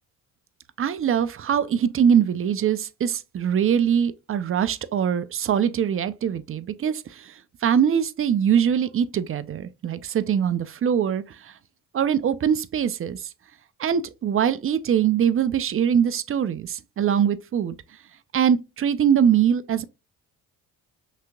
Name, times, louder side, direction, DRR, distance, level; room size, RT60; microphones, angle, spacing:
voice 1, 0.8-7.3 7.6-11.5 11.9-13.3 13.8-17.7 18.3-19.8, right 8 dB, 35° right, 0.5 m, -22 dB
5.9 x 2.9 x 2.2 m
supercardioid pair, 75°, 37 cm